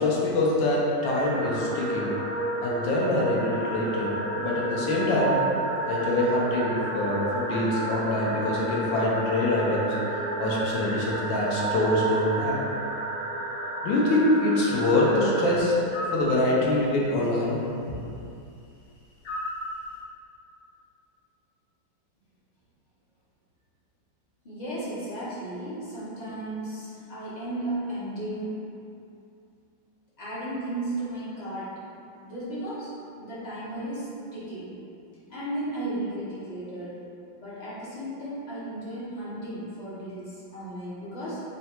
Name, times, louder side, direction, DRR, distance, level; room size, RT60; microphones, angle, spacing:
voice 1, 0.0-2.1 2.6-4.1 4.4-5.4 5.9-10.0 10.4-12.6 13.8-15.7 16.1-17.6 17.9-18.0, left 1 dB, 85° left, -4 dB, 1.5 m, -24 dB
sound 1, 1.0-15.6, right 2 dB, 70° right, 0.6 m, -31 dB
sound 2, 15.9-16.3 19.3-19.7, left 1 dB, 70° left, 1.4 m, -32 dB
voice 2, 24.4-28.6 30.2-31.8 32.2-32.9 33.2-34.8 35.3-37.0 37.4-41.4, right 1 dB, 55° left, -10 dB, 0.5 m, -34 dB
3.7 x 2.2 x 4.2 m, 2.6 s
omnidirectional pair, 2.0 m